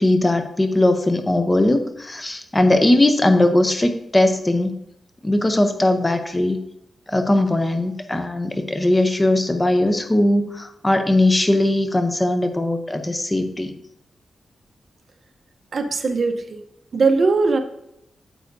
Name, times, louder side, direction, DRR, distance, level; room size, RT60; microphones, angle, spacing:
voice 1, 0.0-4.7 5.2-6.6 7.1-13.8, left 1 dB, 20° left, 7 dB, 0.6 m, -19 dB
voice 2, 15.7-16.6 16.9-17.6, right 4 dB, 50° right, 6 dB, 0.8 m, -19 dB
9.4 x 7.6 x 2.6 m, 0.81 s
wide cardioid pair, 125°, 0 cm